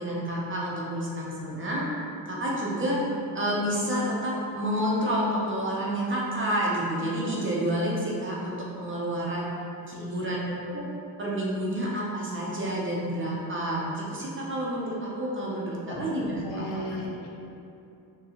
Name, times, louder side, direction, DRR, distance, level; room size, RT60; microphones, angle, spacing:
voice 1, 0.0-1.9 2.2-3.0 3.3-9.5 9.9-10.4 10.7-10.9 11.2-16.8, equal, 30° right, -4 dB, 0.7 m, -29 dB
voice 2, 9.9-10.4 15.9-16.1 16.4-17.3, left 1 dB, 75° left, -1 dB, 0.7 m, -36 dB
6.1 x 2.3 x 2.9 m, 2.7 s
cardioid pair, 140°, 41 cm